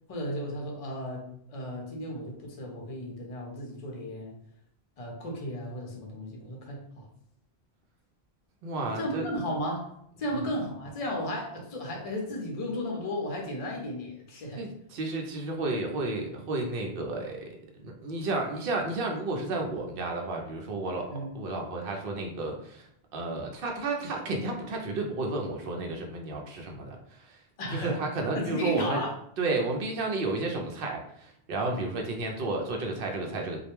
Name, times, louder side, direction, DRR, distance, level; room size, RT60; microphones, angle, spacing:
voice 1, 0.1-1.2 1.5-4.3 5.0-7.0 9.0-14.6 21.1-21.4 27.6-28.0 28.3-29.1 31.6-31.8, equal, 40° left, 0 dB, 0.6 m, -34 dB
voice 2, 8.6-9.3 14.5-17.5 17.8-27.4 27.7-29.0 29.4-33.6, right 2 dB, 65° right, 1 dB, 0.7 m, -32 dB
2.2 x 2.1 x 2.9 m, 0.71 s
omnidirectional pair, 1.1 m